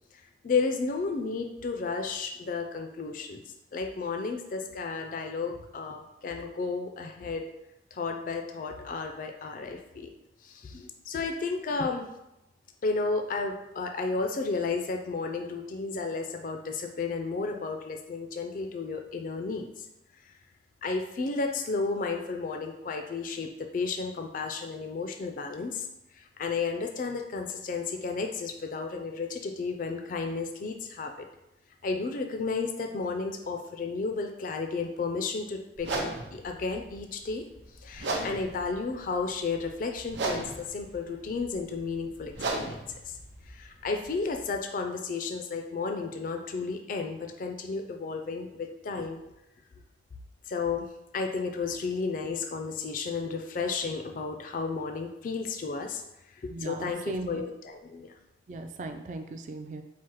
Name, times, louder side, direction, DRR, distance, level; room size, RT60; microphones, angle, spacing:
voice 1, 0.4-3.4 3.7-7.5 7.9-10.1 10.4-12.1 12.8-19.8 20.8-25.9 26.1-31.3 31.8-37.4 37.8-43.2 43.5-49.2 50.5-56.0 56.3-58.1, left 4 dB, 50° left, 4 dB, 0.4 m, -33 dB
sound 1, 35.8-44.5, right 2 dB, 90° right, 0.7 m, -37 dB
voice 2, 56.5-57.4 58.5-59.8, right 2 dB, 45° right, 5 dB, 0.3 m, -37 dB
4.4 x 2.0 x 4.6 m, 0.89 s
head